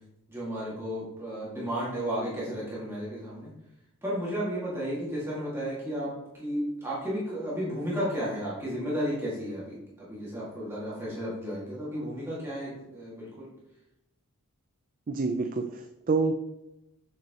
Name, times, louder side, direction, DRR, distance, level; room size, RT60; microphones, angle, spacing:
voice 1, 0.3-3.5 4.0-6.1 6.4-13.5, equal, 10° right, -8 dB, 1.9 m, -33 dB
voice 2, 15.1-16.3, right 4 dB, 40° right, 6 dB, 0.4 m, -27 dB
7.5 x 6.1 x 2.9 m, 0.92 s
head